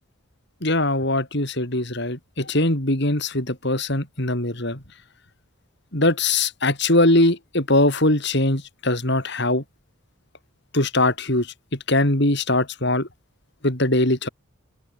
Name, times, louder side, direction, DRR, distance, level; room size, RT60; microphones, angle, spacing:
voice 1, 0.6-4.8 5.9-9.6 10.7-11.5 11.9-13.1 13.6-14.3, left 2 dB, 50° left, 4.3 m, -21 dB
open air
head